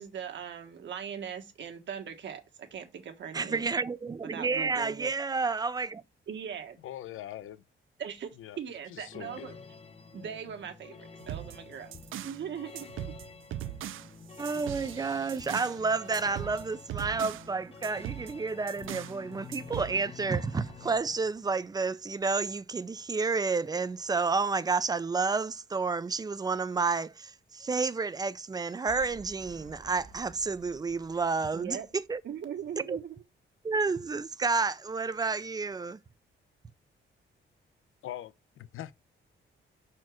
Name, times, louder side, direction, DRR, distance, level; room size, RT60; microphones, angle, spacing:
voice 1, 0.0-3.7 4.3-5.1 6.3-6.8 8.0-8.3 8.6-9.6 10.1-11.9 12.2-12.9 31.5-31.9 32.2-33.2, right 8 dB, 65° right, 1.4 m, -40 dB
voice 2, 3.3-6.0 14.4-32.2 32.9-33.0 33.6-36.0, right 4 dB, 20° right, 0.4 m, -30 dB
voice 3, 6.8-7.6 8.4-8.6 8.9-9.7 38.0-38.9, left 12 dB, 85° left, 0.6 m, -42 dB
sound 1, 9.1-21.0, left 5 dB, 30° left, 0.7 m, -49 dB
sound 2, 11.2-12.4 12.8-15.8 16.1-17.5 17.8-19.2 19.5-19.9, right 12 dB, 80° right, 0.5 m, -40 dB
sound 3, 28.5-32.7, right 4 dB, 40° right, 1.3 m, -53 dB
6.0 x 4.4 x 6.2 m
wide cardioid pair, 155°, 20 cm